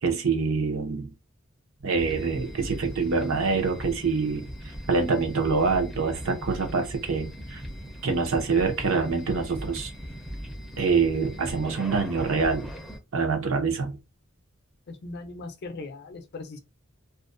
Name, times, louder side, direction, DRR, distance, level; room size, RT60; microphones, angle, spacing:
voice 1, 0.0-1.1 1.8-7.6 8.0-9.9 10.8-12.7 13.1-14.0, right 4 dB, 65° right, 0.6 m, -25 dB
sound 1, 2.0-13.0, equal, ahead, 0.4 m, -39 dB
voice 2, 14.9-16.6, left 3 dB, 50° left, 0.5 m, -39 dB
2.4 x 2.1 x 2.5 m
head